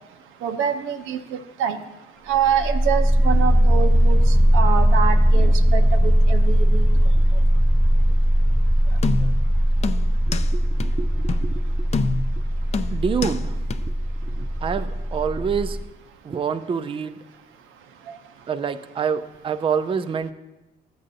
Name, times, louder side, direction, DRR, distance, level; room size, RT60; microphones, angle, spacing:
voice 1, 0.4-1.2 1.6-1.8 2.3-4.2 4.5-6.9, right 8 dB, 90° right, 7 dB, 0.7 m, -25 dB
sound 1, 2.3-15.8, equal, 5° left, 1.1 m, -19 dB
sound 2, 9.0-9.5 9.8-10.5 10.8-10.9 11.3-11.5 11.9-12.4 12.7-13.4 13.7-13.8, left 5 dB, 35° left, 0.4 m, -26 dB
voice 2, 10.3-11.9 12.9-13.6 13.8-13.9 14.2-15.8 16.2-17.2 18.5-20.3, right 6 dB, 25° right, 10 dB, 0.4 m, -27 dB
13.0 x 8.7 x 2.7 m, 1.0 s
cardioid pair, 90°, 20 cm